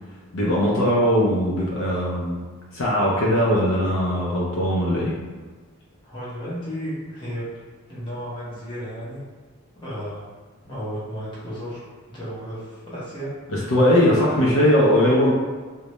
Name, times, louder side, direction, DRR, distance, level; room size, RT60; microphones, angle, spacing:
voice 1, 0.3-2.4 2.7-5.2 13.5-15.3, equal, 60° left, -5 dB, 0.4 m, -20 dB
voice 2, 6.0-7.4 7.9-9.2 9.8-10.3 10.6-15.3, equal, 20° left, -9 dB, 0.7 m, -33 dB
2.1 x 2.0 x 2.8 m, 1.4 s
head